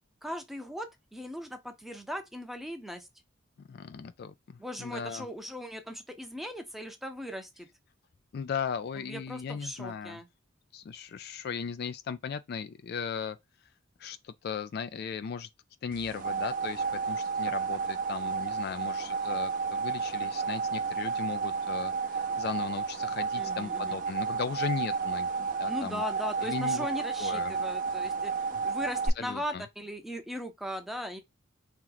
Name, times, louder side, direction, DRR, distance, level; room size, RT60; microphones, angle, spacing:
voice 1, 0.2-3.1 4.6-7.7 9.0-10.3 23.4-24.0 25.7-31.2, left 1 dB, ahead, 0.6 m, -38 dB
voice 2, 3.7-5.3 8.3-10.2 10.7-13.4 14.0-15.5 15.8-26.0 26.4-26.9 27.2-27.5 29.2-29.6, left 6 dB, 55° left, 0.3 m, -37 dB
sound 1, 15.9-29.1, right 5 dB, 45° right, 0.6 m, -32 dB
3.0 x 2.9 x 3.8 m
head